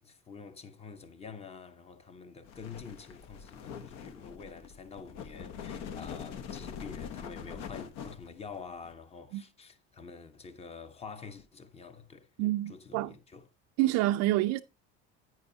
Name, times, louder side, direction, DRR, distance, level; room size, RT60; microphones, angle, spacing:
voice 1, 0.0-13.5, left 5 dB, 20° left, 0.9 m, -47 dB
sound 1, 2.4-8.9, left 7 dB, 60° left, 1.0 m, -43 dB
voice 2, 12.4-13.1 13.8-14.6, right 16 dB, 60° right, 0.5 m, -27 dB
10.5 x 8.7 x 2.8 m
cardioid pair, 135°, 30 cm